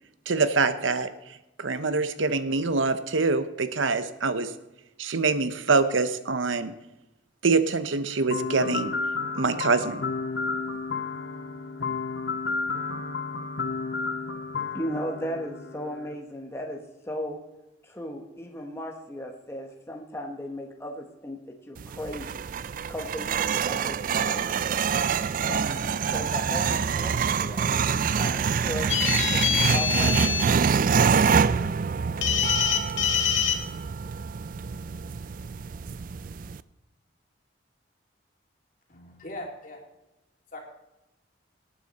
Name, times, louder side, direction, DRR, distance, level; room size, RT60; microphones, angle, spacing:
voice 1, 0.3-1.1 1.6-4.5 5.0-6.7 7.4-8.9 9.4-10.0, right 4 dB, 90° right, 11 dB, 0.9 m, -25 dB
sound 1, 8.3-16.2, left 4 dB, 65° left, 0.8 m, -32 dB
voice 2, 14.7-17.4 17.8-21.4 21.7-22.4 22.9-24.8 25.5-27.7 28.2-29.0 29.3-30.5, equal, 15° left, 1 dB, 1.2 m, -36 dB
sound 2, 21.8-36.6, right 6 dB, 45° right, 0.4 m, -26 dB
sound 3, 28.9-30.4 32.2-33.6, left 8 dB, 80° left, 1.8 m, -25 dB
voice 3, 38.9-39.8 40.5-40.6, left 1 dB, 45° left, 0 dB, 3.0 m, -39 dB
18.5 x 9.0 x 4.2 m, 0.95 s
head